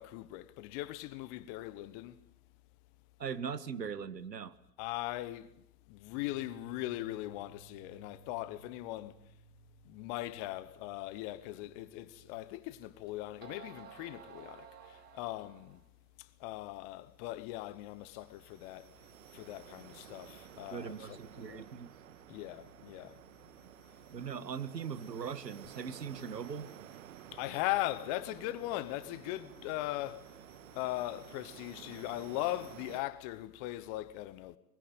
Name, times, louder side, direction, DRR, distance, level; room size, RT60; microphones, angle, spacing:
voice 1, 0.0-2.2 4.8-5.5 5.9-9.2 9.9-15.8 16.2-18.9 19.3-21.6 22.3-23.2 27.3-30.3 30.7-34.6, left 16 dB, 25° left, 0.9 m, -39 dB
voice 2, 3.2-4.5 20.7-21.9 24.1-26.7, right 7 dB, 75° right, 1.7 m, -40 dB
Bass guitar, 6.1-12.4, right 6 dB, 45° left, 3.3 m, -60 dB
sound 1, 12.3-12.4 13.1-13.2 13.4-15.9, right 8 dB, 20° right, 1.9 m, -53 dB
sound 2, 17.3-33.0, right 10 dB, 50° right, 1.8 m, -53 dB
22.0 x 21.0 x 9.0 m
figure-of-eight pair, 120°, 49 cm